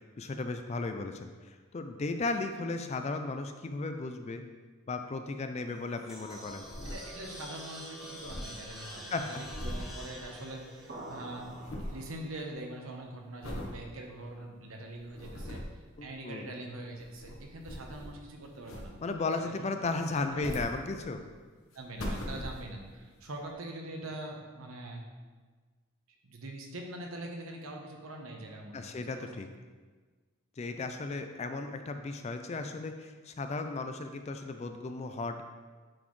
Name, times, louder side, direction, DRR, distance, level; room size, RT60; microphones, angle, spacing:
voice 1, 0.2-4.4 4.9-6.7 9.1-9.4 16.0-16.5 19.0-21.2 28.7-29.5 30.6-35.4, left 3 dB, 30° left, 7 dB, 0.3 m, -35 dB
sound 1, 5.7-12.0, equal, ahead, 1.1 m, -47 dB
sound 2, 6.6-7.5 7.8-7.9 8.0-10.8 11.1-12.1 12.5-12.9 13.4-13.8 14.3-14.4 14.9-15.8 16.8-18.3 18.6-19.2 20.1-21.3 21.7-22.9 23.5-23.6, equal, 80° left, 1.0 m, -41 dB
voice 2, 6.8-15.6 16.0-18.9 19.5-19.7 20.3-20.4 21.7-25.1 26.2-29.3, right 1 dB, 80° right, 1 dB, 1.0 m, -43 dB
sound 3, 10.9-12.6, right 1 dB, 40° right, 0.7 m, -46 dB
8.9 x 4.2 x 3.2 m, 1.4 s
head